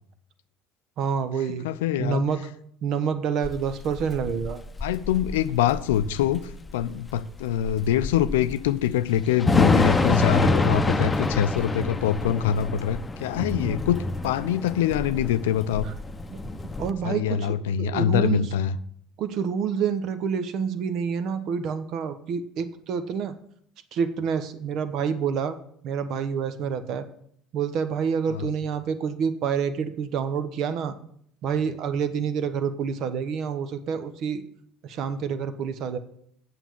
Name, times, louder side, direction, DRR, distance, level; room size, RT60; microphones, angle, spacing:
voice 1, 1.0-1.7 2.0-2.5 2.8-4.6 13.6-13.8 15.8-15.9 16.3-16.5 16.8-18.4 19.2-23.3 23.9-25.6 25.8-27.1 27.5-30.9 31.4-34.4 34.8-36.0, right 7 dB, 55° right, 0.9 m, -28 dB
voice 2, 1.6-2.2 4.8-15.9 17.0-18.8 28.3-28.5, left 10 dB, 70° left, 0.5 m, -24 dB
Thunder / Rain, 3.4-16.9, left 2 dB, 20° left, 0.8 m, -27 dB
9.0 x 6.9 x 6.2 m
figure-of-eight pair, 60°, 0 cm